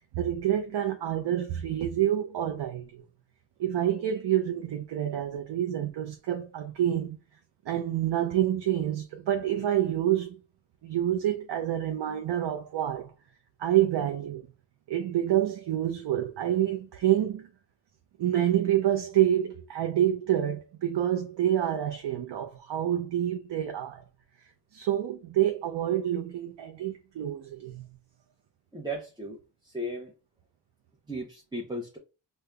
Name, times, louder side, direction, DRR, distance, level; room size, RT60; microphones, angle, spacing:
voice 1, 0.1-3.0 3.6-7.2 7.7-10.4 10.8-13.1 13.6-14.5 14.9-17.5 18.2-24.0 24.4-27.9, right 11 dB, 80° right, 0.5 m, -27 dB
voice 2, 28.7-29.4 29.6-30.1 31.1-32.0, right 1 dB, 10° right, 0.6 m, -35 dB
4.9 x 2.2 x 2.2 m
wide cardioid pair, 110°, 42 cm